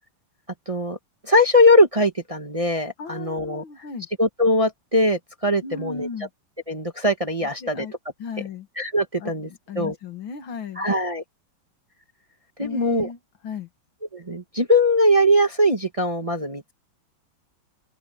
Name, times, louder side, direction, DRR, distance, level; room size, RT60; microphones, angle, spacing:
voice 1, 0.7-1.0 1.3-3.6 4.2-6.1 6.7-7.9 8.8-9.5 9.7-9.9 10.8-11.2 12.6-13.1 14.1-16.7, left 1 dB, 20° right, 1.2 m, -21 dB
voice 2, 3.0-4.1 5.6-6.3 7.4-7.9 8.2-8.7 9.2-10.9 12.6-13.2 13.4-13.7, left 5 dB, 75° left, 2.5 m, -35 dB
open air
omnidirectional pair, 2.2 m